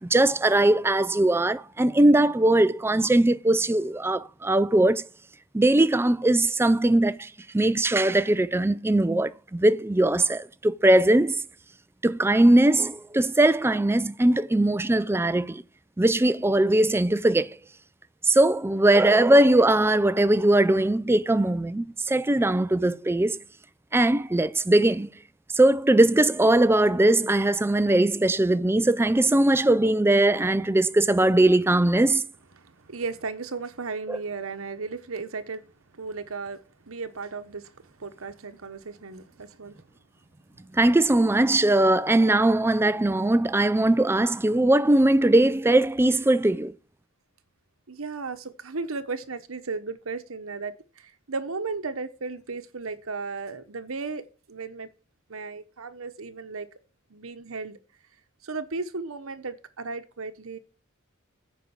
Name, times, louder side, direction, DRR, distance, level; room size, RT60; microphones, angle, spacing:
voice 1, 0.0-5.1 5.5-7.3 7.5-11.4 12.0-15.6 16.0-17.6 18.2-23.4 23.9-25.1 25.5-32.2 34.1-34.2 40.7-46.7, right 1 dB, 10° right, 0.4 m, -20 dB
voice 2, 32.6-35.6 35.9-39.8 47.9-54.9 55.3-56.7 57.1-57.8 58.4-60.6, right 4 dB, 85° right, 1.0 m, -35 dB
9.7 x 5.3 x 8.0 m
head